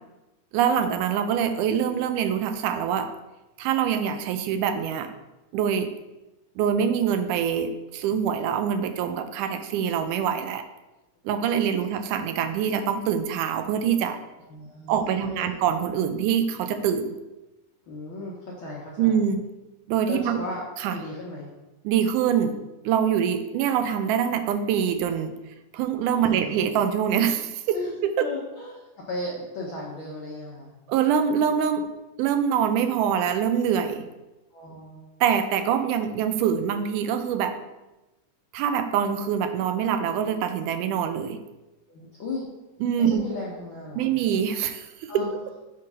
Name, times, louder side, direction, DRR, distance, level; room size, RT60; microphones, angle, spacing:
voice 1, 0.5-3.1 3.6-5.1 5.5-5.9 6.6-10.6 11.3-14.2 14.9-17.2 19.0-19.4 19.9-20.4 20.8-21.0 21.8-22.6 22.8-25.3 25.7-28.3 30.9-31.9 32.2-34.1 35.2-37.5 38.5-41.4 42.8-43.3 44.0-45.2, right 8 dB, 90° right, 8 dB, 2.1 m, -24 dB
voice 2, 14.5-15.6 17.9-19.2 20.0-20.6 20.9-21.5 26.2-26.6 27.7-30.7 34.5-35.1 41.9-42.4 43.0-44.2 45.1-45.3, left 2 dB, 75° left, -5 dB, 1.1 m, -36 dB
5.7 x 3.7 x 5.3 m, 1.0 s
omnidirectional pair, 3.5 m